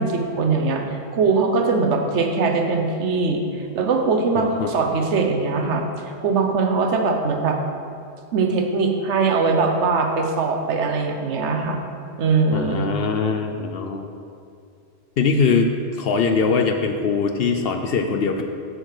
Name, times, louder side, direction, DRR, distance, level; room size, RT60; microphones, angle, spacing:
voice 1, 0.0-5.8 6.2-7.6 8.3-11.8 12.2-12.8, right 4 dB, 70° right, 4 dB, 1.1 m, -21 dB
voice 2, 4.4-4.7 12.5-14.1 15.2-18.4, left 5 dB, 60° left, 5 dB, 0.7 m, -22 dB
7.9 x 6.3 x 4.8 m, 2.4 s
omnidirectional pair, 1.3 m